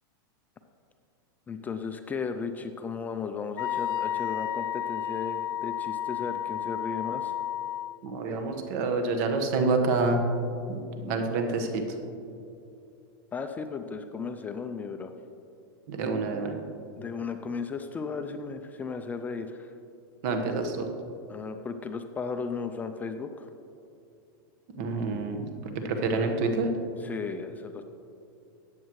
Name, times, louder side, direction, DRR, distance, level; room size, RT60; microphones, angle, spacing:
voice 1, 1.5-7.3 13.3-15.1 17.0-19.7 21.3-23.5 27.0-27.8, left 5 dB, 15° left, 7 dB, 0.4 m, -35 dB
Wind instrument woodwind instrument, 3.6-8.0, left 11 dB, 75° left, 0.5 m, -32 dB
voice 2, 8.0-10.2 11.0-11.8 15.9-16.6 20.2-20.9 24.8-25.4 25.7-26.7, right 3 dB, 55° right, 5 dB, 1.3 m, -27 dB
14.0 x 9.0 x 3.1 m, 2.6 s
supercardioid pair, 145°, 12 cm